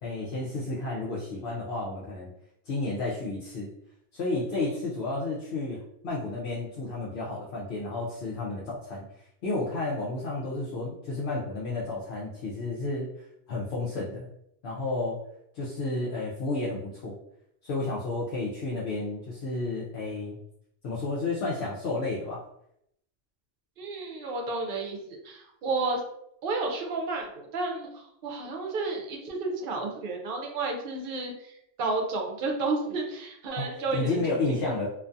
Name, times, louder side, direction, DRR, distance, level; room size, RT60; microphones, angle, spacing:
voice 1, 0.0-2.3 2.7-3.7 4.1-9.1 9.4-13.1 13.5-14.3 14.6-15.2 15.5-17.2 17.6-20.4 20.8-22.4 33.6-34.9, left 2 dB, 75° left, -5 dB, 0.8 m, -31 dB
voice 2, 23.8-26.0 26.4-27.9 28.2-31.5 31.8-34.2 34.6-34.7, right 3 dB, 65° right, 2 dB, 0.7 m, -31 dB
2.4 x 2.3 x 2.6 m, 0.76 s
omnidirectional pair, 1.1 m